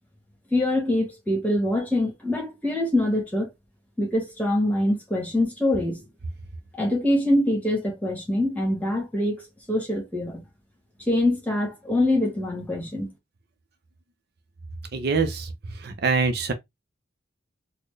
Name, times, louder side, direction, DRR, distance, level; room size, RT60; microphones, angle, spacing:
voice 1, 0.5-3.5 4.0-6.0 6.8-10.4 11.1-13.1, left 1 dB, 10° left, 1.3 m, -24 dB
voice 2, 14.9-15.5 15.8-16.5, right 4 dB, 55° right, 0.6 m, -24 dB
4.2 x 2.1 x 3.2 m
head